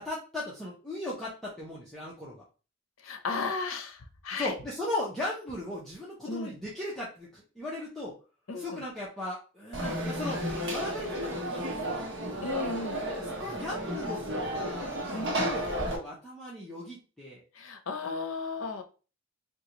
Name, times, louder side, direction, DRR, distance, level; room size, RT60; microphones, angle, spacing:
voice 1, 0.0-2.4 4.4-8.1 8.5-10.4 10.7-12.1 13.2-15.0 15.3-17.4, left 1 dB, ahead, -8 dB, 0.7 m, -37 dB
voice 2, 3.0-4.0 4.2-4.5 6.3-6.5 8.5-8.8 12.4-13.1 15.1-15.5 17.6-18.8, left 4 dB, 70° left, 6 dB, 0.6 m, -34 dB
Conversation / Crowd, 9.7-16.0, right 1 dB, 60° right, 0.9 m, -33 dB
3.8 x 2.4 x 2.9 m, 0.34 s
head